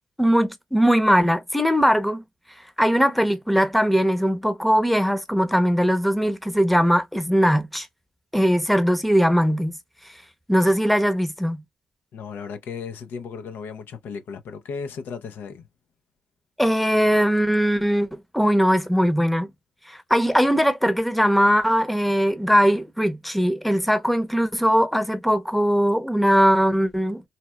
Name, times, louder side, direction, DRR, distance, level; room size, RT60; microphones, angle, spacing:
voice 1, 0.2-2.2 2.8-7.9 8.3-9.7 10.5-11.6 16.6-19.5 19.9-27.2, equal, ahead, 0.7 m, -20 dB
voice 2, 12.1-15.7, left 6 dB, 80° left, 0.6 m, -35 dB
4.0 x 2.1 x 2.2 m
supercardioid pair, 55°, 3 cm